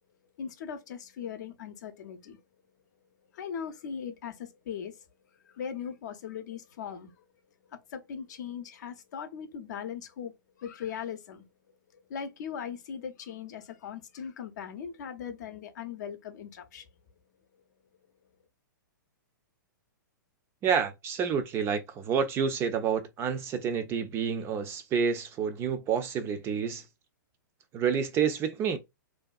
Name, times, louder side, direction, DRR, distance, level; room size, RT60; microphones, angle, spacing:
voice 1, 0.4-2.4 3.3-5.1 5.4-7.2 7.7-16.9, left 7 dB, 60° left, 0.6 m, -39 dB
voice 2, 20.6-26.8 27.7-28.8, right 7 dB, 25° right, 0.3 m, -29 dB
2.6 x 2.2 x 2.4 m
hypercardioid pair, 120°, 11 cm